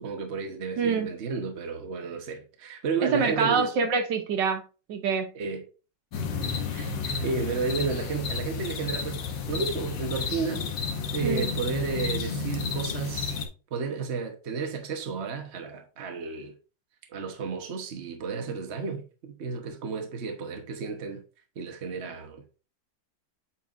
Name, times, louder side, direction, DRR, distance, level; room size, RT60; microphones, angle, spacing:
voice 1, 0.0-3.7 5.3-5.6 6.7-10.7 11.1-13.4 13.7-16.5 17.1-21.2 21.5-22.6, right 5 dB, 40° right, 1.2 m, -32 dB
voice 2, 0.8-1.1 3.0-4.6 4.9-5.3 11.2-11.5, right 5 dB, 75° right, 1.6 m, -25 dB
sound 1, 6.1-13.5, left 5 dB, 80° left, 1.7 m, -31 dB
8.2 x 4.5 x 2.6 m
omnidirectional pair, 1.9 m